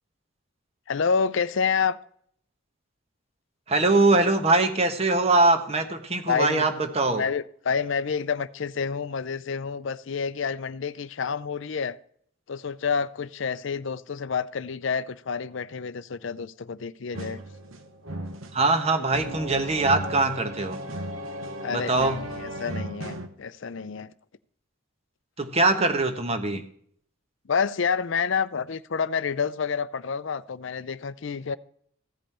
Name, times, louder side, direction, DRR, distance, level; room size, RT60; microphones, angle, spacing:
voice 1, 0.9-2.0 6.3-6.7 7.1-12.0 12.5-17.4 21.6-24.1 27.5-31.6, left 6 dB, 60° left, 0.5 m, -28 dB
voice 2, 3.7-7.2 18.5-20.8 21.7-22.2 25.4-26.6, right 2 dB, 30° right, 1.1 m, -22 dB
sound 1, 17.1-23.3, right 1 dB, 70° right, 1.2 m, -36 dB
15.5 x 5.4 x 4.2 m
head